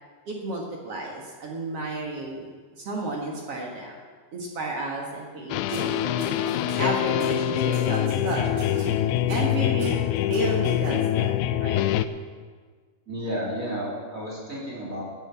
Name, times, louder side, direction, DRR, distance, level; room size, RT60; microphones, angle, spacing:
voice 1, 0.3-2.5 2.8-4.0 4.3-8.6 9.3-9.9 10.2-11.9, right 2 dB, 60° right, -1 dB, 1.5 m, -32 dB
sound 1, 5.5-12.1, left 12 dB, 85° left, 2.6 m, -25 dB
sound 2, 5.7-11.3, right 1 dB, 80° right, 6.0 m, -37 dB
voice 2, 13.1-15.0, equal, 20° right, -4 dB, 2.7 m, -32 dB
12.0 x 9.2 x 8.1 m, 1.5 s
omnidirectional pair, 5.2 m